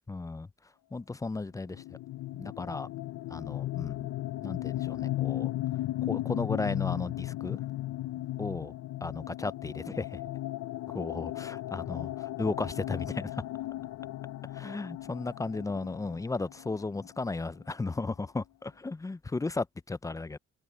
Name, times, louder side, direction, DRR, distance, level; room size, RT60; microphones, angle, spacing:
voice 1, 0.1-0.5 0.9-1.8 2.4-2.9 3.3-4.1 4.4-5.5 6.0-7.6 8.4-8.7 9.0-10.2 10.9-13.4 14.5-20.4, left 3 dB, 10° left, 0.4 m, -35 dB
sound 1, 1.7-17.3, left 15 dB, 65° left, 0.6 m, -36 dB
cardioid pair, 90°, 30 cm